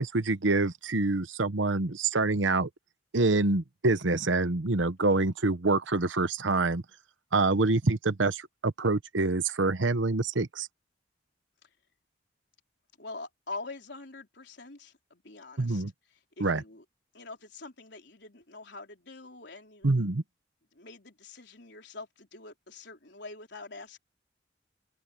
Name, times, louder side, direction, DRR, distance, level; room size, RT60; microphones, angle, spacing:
voice 1, 0.0-2.7 3.1-6.8 7.3-10.7 15.6-15.9 16.4-16.6 19.8-20.2, right 3 dB, 80° right, 1.1 m, -26 dB
voice 2, 13.0-15.8 16.1-16.8 17.1-20.0 20.7-24.0, left 3 dB, 65° left, 4.1 m, -45 dB
open air
head